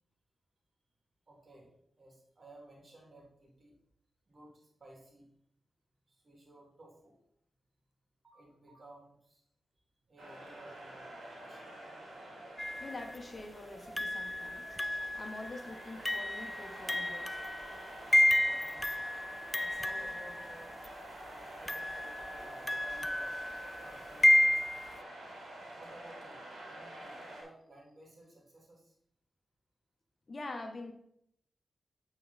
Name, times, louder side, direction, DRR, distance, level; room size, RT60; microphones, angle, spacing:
voice 1, 1.3-1.7 2.0-3.7 4.3-5.3 6.1-7.2 8.2-9.4 10.1-11.7 18.3-19.0 19.6-20.8 21.3-23.3 23.8-24.8 25.7-28.9, right 1 dB, 50° right, -1 dB, 3.0 m, -56 dB
sound 1, 10.2-27.4, right 1 dB, 70° right, 2.7 m, -48 dB
sound 2, 12.6-13.2 14.0-20.9 21.7-25.0, left 1 dB, 20° left, 0.5 m, -31 dB
voice 2, 12.8-14.8 15.1-17.4 30.3-30.9, left 2 dB, 45° left, 5 dB, 1.1 m, -45 dB
8.5 x 4.5 x 4.1 m, 0.72 s
supercardioid pair, 40°, 0 cm